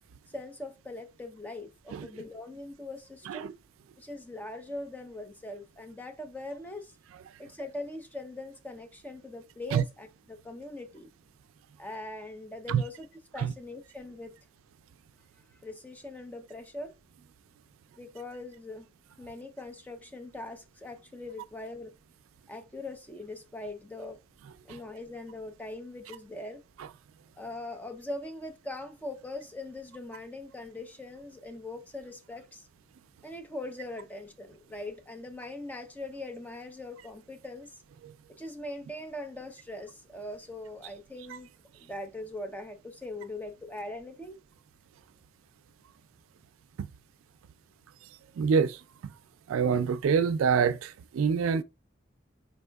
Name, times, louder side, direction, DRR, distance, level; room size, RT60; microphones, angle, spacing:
voice 1, 0.3-3.6 4.0-6.9 7.4-11.1 11.8-13.1 13.3-14.3 15.6-16.9 18.0-18.9 19.2-21.9 22.5-24.2 24.6-26.6 27.4-32.6 33.2-37.7 38.4-41.5 41.8-44.4, left 2 dB, 10° left, 0.5 m, -41 dB
voice 2, 48.4-49.1 49.5-51.6, right 6 dB, 85° right, 0.3 m, -26 dB
4.5 x 3.5 x 2.3 m
head